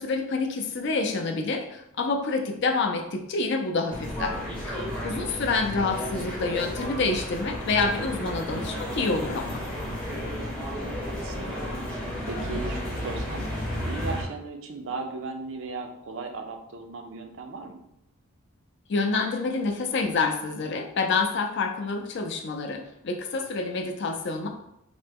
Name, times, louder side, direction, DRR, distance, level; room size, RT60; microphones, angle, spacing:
voice 1, 0.0-9.6 18.9-24.5, left 3 dB, 50° left, 4 dB, 0.4 m, -28 dB
sound 1, 3.9-14.2, equal, 5° left, 0.6 m, -32 dB
voice 2, 4.9-5.3 10.4-11.6 12.3-13.4 13.9-17.8, right 3 dB, 60° right, 5 dB, 0.4 m, -37 dB
3.3 x 2.0 x 3.4 m, 0.78 s
head